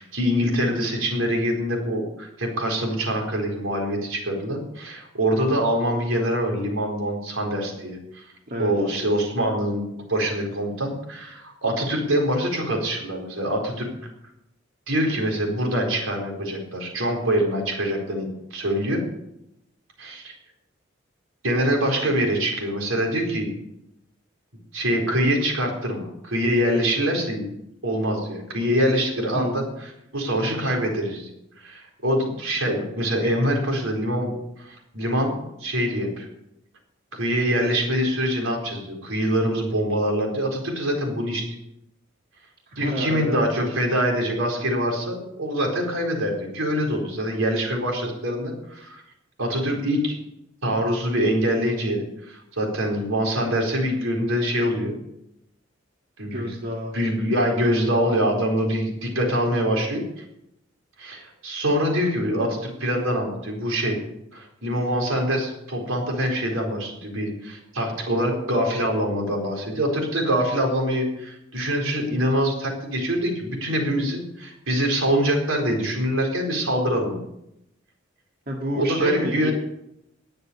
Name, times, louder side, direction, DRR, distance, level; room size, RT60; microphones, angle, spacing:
voice 1, 0.0-8.2 8.6-13.9 14.9-19.0 20.0-20.4 21.4-23.5 24.7-27.5 27.8-31.3 31.6-34.3 34.6-35.3 35.6-36.3 37.2-41.4 42.8-49.0 49.4-50.2 50.6-54.9 56.2-56.5 56.9-60.0 61.0-64.0 64.3-77.2 78.7-79.5, equal, 85° right, 1 dB, 4.3 m, -24 dB
voice 2, 42.7-43.4 56.2-57.0 78.5-79.5, equal, 50° right, -1 dB, 1.9 m, -29 dB
19.5 x 6.8 x 6.9 m, 0.83 s
head